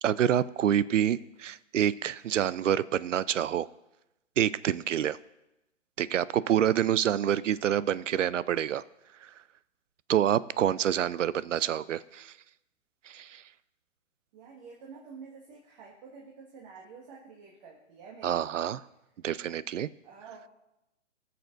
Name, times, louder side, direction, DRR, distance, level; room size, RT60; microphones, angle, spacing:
voice 1, 0.0-3.7 4.4-5.2 6.0-8.8 10.1-12.3 13.1-13.4 18.2-18.8 19.2-19.9, right 10 dB, 75° right, 19 dB, 0.5 m, -27 dB
voice 2, 14.3-18.7 20.0-20.5, right 5 dB, 35° right, -2 dB, 1.6 m, -49 dB
20.5 x 6.8 x 2.5 m, 0.92 s
hypercardioid pair, 130°, 38 cm